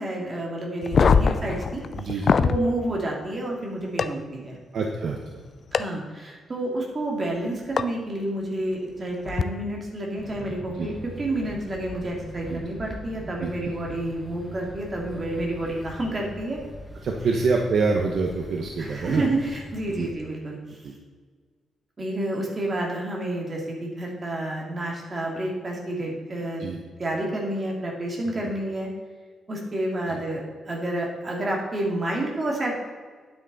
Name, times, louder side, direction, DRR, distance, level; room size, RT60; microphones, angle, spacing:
voice 1, 0.0-1.8 2.1-4.6 5.7-16.6 18.8-20.8 22.0-26.7 27.0-28.9 29.5-32.7, right 1 dB, 25° right, -1 dB, 2.4 m, -29 dB
sound 1, 0.8-2.6 4.0-4.1 5.7-5.8 7.8-7.9 9.3-9.4, left 5 dB, 40° left, 0.4 m, -21 dB
voice 2, 2.0-2.3 4.7-5.2 10.7-10.9 12.5-12.6 13.4-13.5 17.0-19.2 20.0-20.1 20.8-20.9 26.6-26.8 30.1-30.2, right 4 dB, 50° right, 1 dB, 1.0 m, -26 dB
sound 2, 10.2-20.1, equal, 10° left, 1.5 m, -42 dB
10.5 x 9.2 x 4.0 m, 1.5 s
wide cardioid pair, 165°, 0 cm